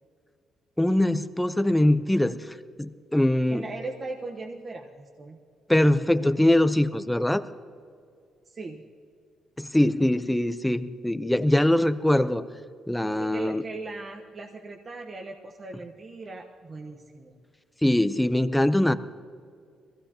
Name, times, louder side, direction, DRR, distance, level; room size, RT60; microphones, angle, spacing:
voice 1, 0.8-3.6 5.7-7.4 9.6-12.4 12.9-13.6 17.8-18.9, left 1 dB, 5° left, 12 dB, 0.6 m, -22 dB
voice 2, 3.5-5.4 8.5-8.9 13.2-17.4, right 3 dB, 40° right, 1 dB, 1.0 m, -38 dB
22.0 x 16.0 x 2.9 m, 2.3 s
cardioid pair, 90°, 0 cm